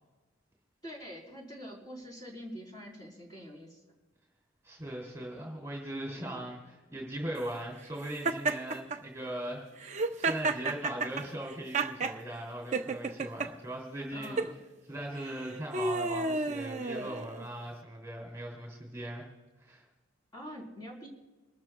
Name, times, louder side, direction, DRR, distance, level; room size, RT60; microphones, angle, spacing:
voice 1, 0.8-3.8 6.1-6.5 14.1-14.6 20.3-21.1, equal, 20° left, -2 dB, 3.9 m, -45 dB
voice 2, 4.6-14.5 14.9-19.3 19.6-19.8, right 1 dB, 15° right, -1 dB, 2.7 m, -39 dB
Laughter, 8.2-9.0 9.8-12.2 12.7-13.5 14.2-14.5 15.3-17.5, right 3 dB, 35° right, 0.7 m, -31 dB
27.0 x 13.5 x 2.3 m, 1.2 s
head